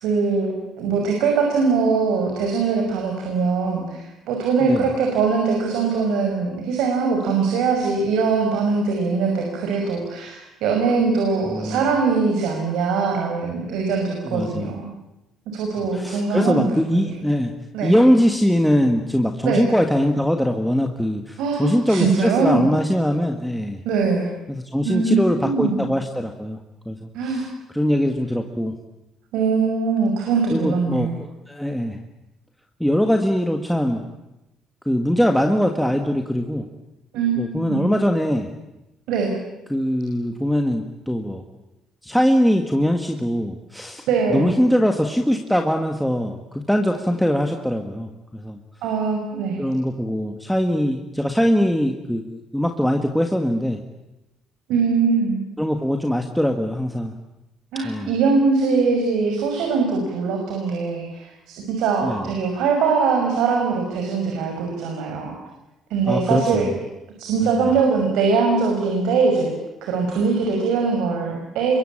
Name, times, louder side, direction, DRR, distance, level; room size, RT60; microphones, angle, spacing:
voice 1, 0.0-14.9 15.5-16.7 16.9-17.1 17.7-18.0 19.4-19.7 21.4-22.7 23.8-24.3 24.8-25.9 27.1-27.5 29.3-31.1 37.1-37.9 39.1-39.3 44.1-44.5 48.8-49.6 54.7-55.4 57.7-65.4 65.9-66.7 67.2-69.5 69.8-71.8, right 4 dB, 90° right, 2 dB, 5.8 m, -22 dB
voice 2, 11.5-11.8 14.3-14.7 15.9-17.5 17.8-23.8 24.5-26.6 26.8-27.5 27.7-28.7 30.5-32.0 32.8-34.0 34.8-36.7 37.4-38.5 39.7-41.4 42.0-44.1 44.3-48.6 49.6-53.8 55.6-57.1 57.8-58.1 62.0-62.3 66.0-66.7 67.4-67.7, equal, ahead, 3 dB, 1.6 m, -22 dB
27.5 x 23.0 x 8.8 m, 0.96 s
cardioid pair, 155°, 0 cm